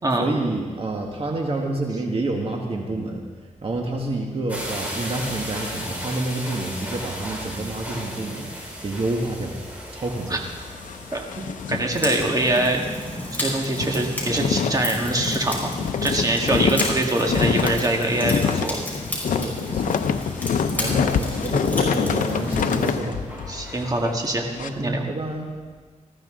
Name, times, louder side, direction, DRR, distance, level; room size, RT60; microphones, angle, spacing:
voice 1, 0.2-3.2 3.6-8.5 8.8-9.6 9.9-10.4 19.3-20.0 20.7-23.2 24.6-25.5, right 2 dB, 45° right, 1 dB, 1.6 m, -28 dB
sound 1, 4.5-24.0, equal, 10° right, 4.4 m, -38 dB
sound 2, 10.4-12.7 13.0-13.2 13.5-24.7, left 7 dB, 85° left, 0.7 m, -26 dB
voice 2, 11.1-12.8 13.4-15.7 16.0-18.8 20.7-21.3 23.5-24.5 24.8-25.0, right 1 dB, 30° right, 1 dB, 1.8 m, -24 dB
sound 3, 11.9-22.9, left 1 dB, 15° left, 5.3 m, -32 dB
19.5 x 14.5 x 3.8 m, 1.4 s
wide cardioid pair, 105°, 13 cm